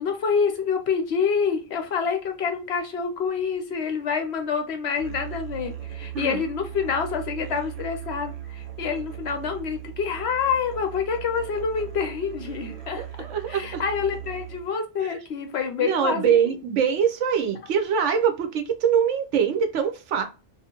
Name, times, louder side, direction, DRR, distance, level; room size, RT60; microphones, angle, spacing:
voice 1, 0.0-13.0 13.5-16.3, left 6 dB, 65° left, 0.8 m, -27 dB
Musical instrument, 5.0-14.8, right 12 dB, 55° right, 0.7 m, -38 dB
voice 2, 13.0-13.8 15.0-15.2 15.8-20.2, right 7 dB, 75° right, 0.9 m, -23 dB
2.6 x 2.4 x 2.8 m
omnidirectional pair, 1.3 m